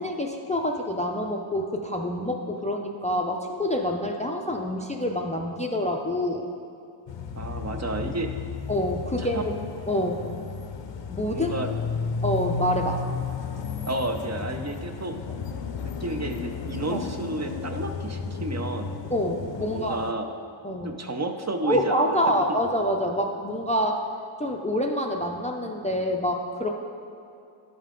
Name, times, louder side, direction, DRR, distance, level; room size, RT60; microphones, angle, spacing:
voice 1, 0.0-6.5 8.7-9.5 9.9-10.3 11.1-11.7 12.2-13.0 16.9-17.0 19.1-20.0 20.6-21.0 21.6-24.0 24.4-26.7, equal, 15° left, 2 dB, 0.4 m, -27 dB
sound 1, 7.1-20.1, left 5 dB, 65° left, 0.6 m, -33 dB
voice 2, 7.4-8.3 9.2-9.4 11.3-11.7 13.9-15.2 15.8-18.9 19.7-20.3 20.8-22.2 22.5-22.6, right 2 dB, 35° right, 5 dB, 0.5 m, -31 dB
11.5 x 5.4 x 3.7 m, 2.6 s
wide cardioid pair, 120°, 49 cm